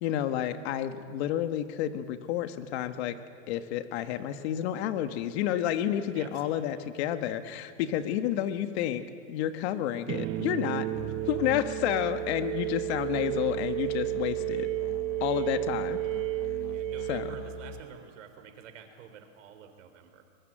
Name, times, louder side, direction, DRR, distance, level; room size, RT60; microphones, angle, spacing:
voice 1, 0.0-3.2 3.5-10.9 11.3-14.7 15.2-16.0 17.1-17.3, left 11 dB, 60° left, 8 dB, 1.7 m, -30 dB
voice 2, 6.1-6.9 12.1-12.2 16.7-20.2, right 7 dB, 80° right, 7 dB, 3.9 m, -49 dB
sound 1, 10.1-18.0, right 18 dB, 35° right, 1.0 m, -32 dB
Musical instrument, 10.9-17.8, left 12 dB, 35° left, 0.7 m, -44 dB
23.5 x 22.0 x 7.7 m, 2.1 s
supercardioid pair, 140°, 37 cm